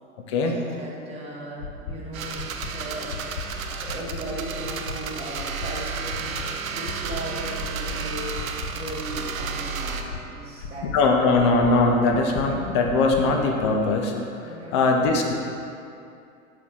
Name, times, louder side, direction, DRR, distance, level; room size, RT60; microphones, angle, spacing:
voice 1, 0.4-2.4 2.7-3.2 3.6-8.4 8.7-10.9 14.4-14.9, right 1 dB, 15° right, -4 dB, 1.0 m, -37 dB
sound 1, 1.6-1.9 2.3-2.7 3.1-3.4 3.8-4.2 4.6-4.9 5.3-5.7 6.1-6.5 6.8-7.2 7.6-7.9 8.3-8.7 9.1-9.4 9.8-10.2 10.6-10.9 11.3-11.7 12.1-12.4 12.8-13.2 13.6-13.7, left 5 dB, 45° left, 0.8 m, -35 dB
sound 2, 2.1-10.0, right 5 dB, 70° right, 0.6 m, -32 dB
voice 2, 10.9-14.1 14.7-15.3, left 3 dB, 25° left, 2 dB, 0.3 m, -20 dB
6.5 x 4.0 x 3.7 m, 2.5 s
figure-of-eight pair, 100°, 43 cm